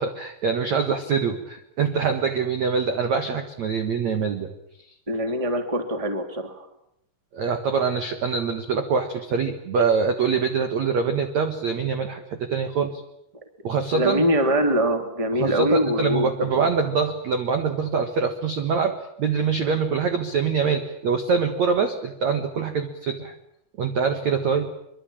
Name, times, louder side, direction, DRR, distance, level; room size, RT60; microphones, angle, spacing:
voice 1, 0.0-4.5 7.3-13.0 13.6-14.3 15.4-23.4 23.8-24.7, right 5 dB, 60° right, 8 dB, 1.9 m, -24 dB
voice 2, 5.1-6.7 13.9-16.7, equal, 10° right, 7 dB, 2.0 m, -23 dB
24.5 x 24.0 x 8.8 m, 0.76 s
omnidirectional pair, 5.4 m